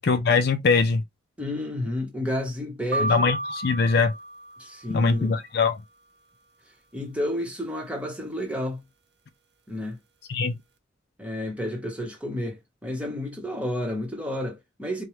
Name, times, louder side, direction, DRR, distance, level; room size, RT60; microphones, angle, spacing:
voice 1, 0.0-1.0 3.0-4.1 4.9-5.8 10.3-10.5, left 4 dB, 50° left, 0.4 m, -22 dB
voice 2, 1.4-3.3 4.6-5.4 6.9-8.8 9.7-10.0 11.2-15.0, left 1 dB, 5° right, 1.1 m, -31 dB
sound 1, 2.9-5.1, right 1 dB, 55° right, 0.6 m, -31 dB
4.5 x 2.3 x 3.1 m
head